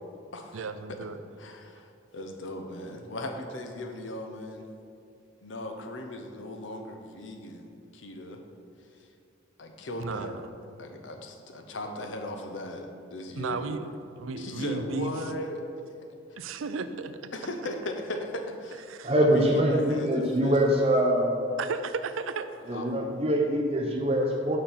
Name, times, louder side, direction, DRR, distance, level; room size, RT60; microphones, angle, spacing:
voice 1, 0.5-1.2 10.0-10.5 13.4-15.1 16.4-17.3 18.9-19.1 21.6-22.5, right 4 dB, 85° right, 10 dB, 0.5 m, -34 dB
voice 2, 1.4-4.7 5.4-8.4 9.6-10.4 10.8-13.7 14.4-15.6 16.4-16.5 17.3-18.9 19.2-21.0 22.7-22.8, left 1 dB, 70° left, 4 dB, 0.8 m, -37 dB
voice 3, 19.0-21.3 22.7-24.6, equal, 30° right, 0 dB, 0.7 m, -24 dB
6.8 x 5.2 x 5.7 m, 2.5 s
head